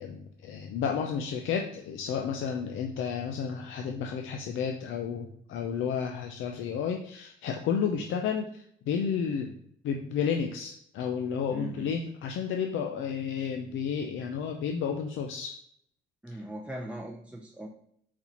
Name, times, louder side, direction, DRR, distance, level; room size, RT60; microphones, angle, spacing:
voice 1, 0.0-9.6 9.8-15.6 16.3-16.4, left 7 dB, 80° left, 3 dB, 0.5 m, -32 dB
voice 2, 11.5-11.9 16.2-17.7, right 1 dB, 5° right, 1 dB, 0.4 m, -40 dB
4.2 x 4.1 x 2.9 m, 0.69 s
cardioid pair, 90°, 20 cm